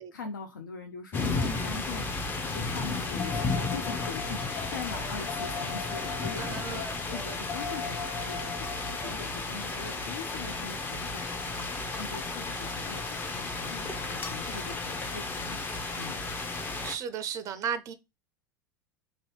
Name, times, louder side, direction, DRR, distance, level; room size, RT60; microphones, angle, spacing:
voice 1, 0.0-15.6 16.0-16.2, left 5 dB, 70° left, 0.4 m, -42 dB
sound 1, 1.1-17.0, left 3 dB, 20° left, 0.6 m, -33 dB
sound 2, 3.2-11.6 14.3-14.4, left 5 dB, 35° left, 1.3 m, -41 dB
voice 2, 6.4-7.0 16.8-17.9, right 7 dB, 30° right, 0.4 m, -35 dB
2.9 x 2.7 x 3.0 m
figure-of-eight pair, 80°, 11 cm